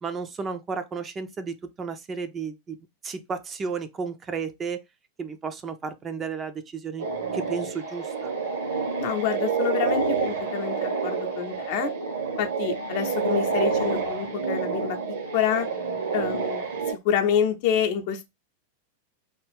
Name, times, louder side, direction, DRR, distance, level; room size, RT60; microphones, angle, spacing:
voice 1, 0.0-2.8 3.0-4.8 5.2-7.1 7.3-8.3, right 5 dB, 20° right, 0.5 m, -33 dB
sound 1, 7.0-16.9, right 5 dB, 60° right, 0.9 m, -28 dB
voice 2, 9.0-11.9 12.4-15.7 16.1-16.7 17.0-18.2, left 8 dB, 50° left, 0.7 m, -27 dB
3.4 x 2.4 x 3.3 m
figure-of-eight pair, 90°, 0 cm